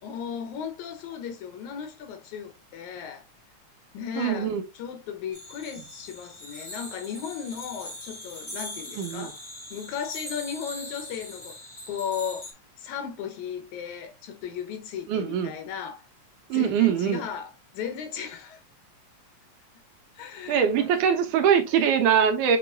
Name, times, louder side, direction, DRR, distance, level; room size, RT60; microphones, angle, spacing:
voice 1, 0.0-3.2 3.9-9.4 9.7-11.6 11.9-12.5 12.8-16.0 16.5-18.6 20.2-21.0 21.7-21.9, left 7 dB, 80° left, 2.3 m, -36 dB
voice 2, 4.2-4.6 9.0-9.3 15.1-15.5 16.5-17.2 20.5-22.6, right 8 dB, 90° right, 2.4 m, -22 dB
sound 1, 5.3-12.5, left 1 dB, 25° left, 1.0 m, -41 dB
7.3 x 3.1 x 2.3 m
omnidirectional pair, 3.4 m